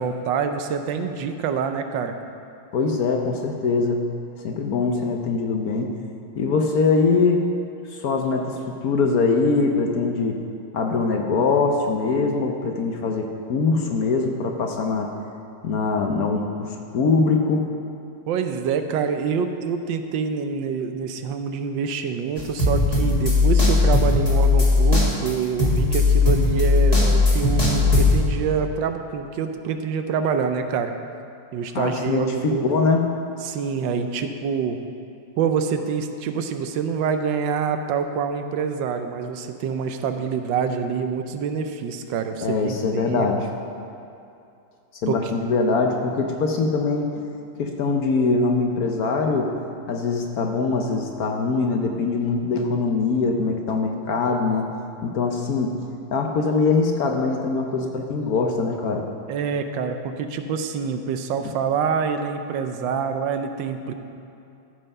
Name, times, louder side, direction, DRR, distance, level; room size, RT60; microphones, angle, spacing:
voice 1, 0.0-2.1 18.3-30.9 31.5-32.7 33.4-34.8 35.4-43.3 45.1-45.3 59.3-63.9, right 6 dB, 80° right, 7 dB, 1.4 m, -26 dB
voice 2, 2.7-4.0 4.4-5.9 6.4-7.5 7.9-10.4 10.7-15.1 15.6-17.6 31.7-33.0 42.4-43.5 45.0-47.2 47.6-49.5 49.9-54.7 55.0-55.8 56.1-59.1, left 4 dB, 60° left, 3 dB, 1.1 m, -22 dB
sound 1, 22.4-28.2, left 3 dB, 20° left, 1.8 m, -18 dB
13.5 x 5.6 x 5.5 m, 2.7 s
omnidirectional pair, 2.0 m